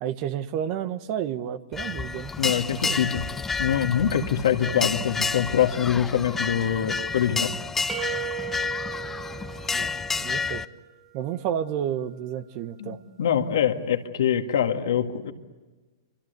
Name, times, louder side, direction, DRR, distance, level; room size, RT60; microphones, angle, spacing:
voice 1, 0.0-2.3 2.7-3.0 9.7-9.9 10.2-10.6 11.1-13.0, right 9 dB, 45° right, 11 dB, 1.3 m, -31 dB
sound 1, 1.7-10.6, left 4 dB, 10° left, 0.8 m, -30 dB
voice 2, 2.4-3.2 3.6-7.5 12.8-15.3, left 9 dB, 70° left, 6 dB, 2.0 m, -24 dB
sound 2, 7.9-10.8, right 11 dB, 15° right, 1.2 m, -36 dB
28.0 x 26.0 x 8.3 m, 1.2 s
hypercardioid pair, 120°, 2 cm